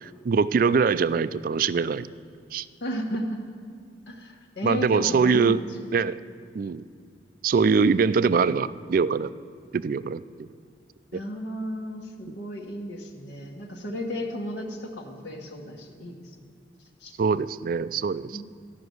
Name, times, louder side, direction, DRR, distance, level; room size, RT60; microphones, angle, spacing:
voice 1, 0.0-2.1 2.5-2.7 4.6-5.6 5.9-6.2 6.5-6.8 7.4-9.3 9.7-10.5 11.1-11.2 12.3-12.4 17.2-18.4, right 5 dB, 50° right, 17 dB, 0.3 m, -23 dB
voice 2, 2.8-3.4 4.1-5.6 11.1-16.4 17.0-17.1 18.3-18.4, equal, 70° left, 0 dB, 1.4 m, -34 dB
14.0 x 6.0 x 9.3 m, 2.2 s
head